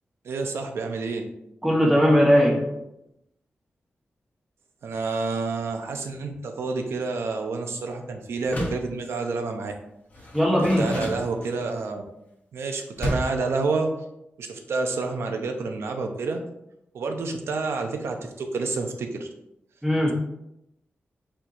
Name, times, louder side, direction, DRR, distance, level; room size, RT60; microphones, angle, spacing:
voice 1, 0.2-1.3 4.8-9.7 10.8-12.0 12.5-13.9 14.4-16.4 16.9-19.3, right 3 dB, 90° right, 4 dB, 0.6 m, -29 dB
voice 2, 1.6-2.8 10.3-11.0 19.8-20.1, equal, ahead, -4 dB, 1.2 m, -19 dB
Door, 8.4-8.9 10.1-11.8 13.0-13.5, equal, 35° left, 1.1 m, -31 dB
4.4 x 4.3 x 2.6 m, 0.83 s
wide cardioid pair, 120°, 4 cm